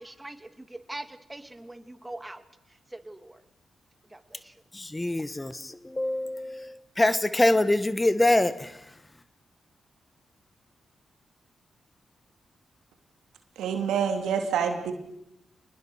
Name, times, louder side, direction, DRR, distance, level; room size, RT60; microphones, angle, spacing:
voice 1, 0.0-2.4 2.7-3.4 4.1-4.5, right 1 dB, 15° right, 9 dB, 2.5 m, -42 dB
voice 2, 4.7-8.8, left 1 dB, 20° left, 14 dB, 1.6 m, -25 dB
voice 3, 13.6-14.9, right 7 dB, 80° right, 5 dB, 2.9 m, -27 dB
27.5 x 20.5 x 6.5 m, 0.79 s
hypercardioid pair, 40°, 0 cm